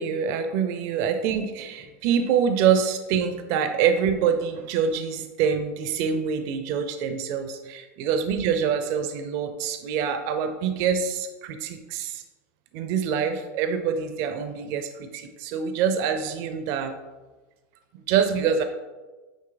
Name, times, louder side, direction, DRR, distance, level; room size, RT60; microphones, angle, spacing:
voice 1, 0.0-12.2 12.7-17.0 17.9-18.6, right 7 dB, 45° right, 8 dB, 0.6 m, -25 dB
8.9 x 3.1 x 3.9 m, 1.2 s
supercardioid pair, 165°, 7 cm